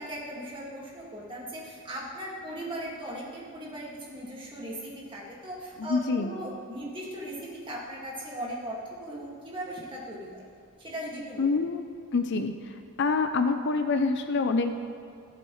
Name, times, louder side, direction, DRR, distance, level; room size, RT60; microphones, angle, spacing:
voice 1, 0.0-10.4 10.8-11.5, right 1 dB, 20° right, -5 dB, 2.0 m, -38 dB
voice 2, 5.8-6.3 11.4-11.8 12.1-12.7 13.0-14.9, left 4 dB, 50° left, 8 dB, 0.5 m, -26 dB
14.5 x 7.7 x 3.2 m, 2.5 s
head